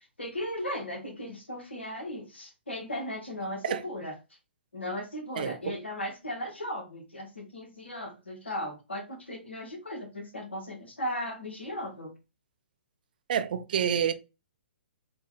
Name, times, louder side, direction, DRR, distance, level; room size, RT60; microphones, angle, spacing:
voice 1, 0.2-4.1 4.7-12.1, left 1 dB, 85° left, 1.1 m, -36 dB
voice 2, 5.4-5.7 13.3-14.1, right 8 dB, 50° right, 0.3 m, -28 dB
3.2 x 2.2 x 3.1 m
figure-of-eight pair, 125°, 6 cm